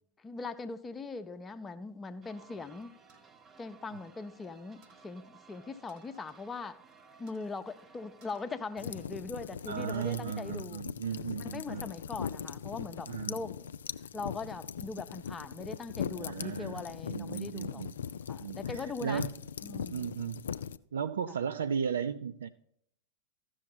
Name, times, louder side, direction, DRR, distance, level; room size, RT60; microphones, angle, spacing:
voice 1, 0.2-2.9 3.6-6.8 7.2-10.8 11.4-13.7 14.1-17.8 18.3-19.2 19.6-20.1, left 3 dB, 15° left, 0.6 m, -41 dB
sound 1, 2.2-9.1, right 5 dB, 25° right, 0.6 m, -58 dB
sound 2, 3.1-4.5 4.8-5.2 5.9-6.5 6.8-6.9 7.3-7.5 8.2-9.3 9.7-10.2 10.6-11.4, right 3 dB, 45° right, 1.2 m, -64 dB
sound 3, 8.8-20.8, left 8 dB, 65° left, 0.3 m, -40 dB
voice 2, 9.7-11.9 13.1-13.4 16.2-16.8 17.1-17.9 18.4-19.3 19.9-20.4 20.9-22.5, right 7 dB, 65° right, 0.3 m, -35 dB
14.0 x 6.3 x 4.2 m
figure-of-eight pair, 90°, 0 cm